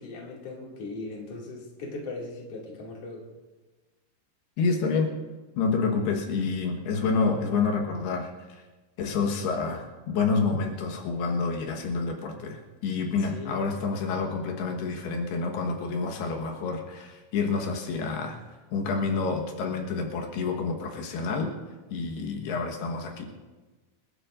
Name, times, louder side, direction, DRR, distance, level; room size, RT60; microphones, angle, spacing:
voice 1, 0.0-3.3 13.2-13.6, left 3 dB, 40° left, -3 dB, 3.0 m, -39 dB
voice 2, 4.6-5.2 5.6-8.3 9.0-18.4 18.7-21.5 21.9-23.3, left 4 dB, 85° left, 2 dB, 3.4 m, -28 dB
28.0 x 12.5 x 2.5 m, 1.2 s
omnidirectional pair, 4.5 m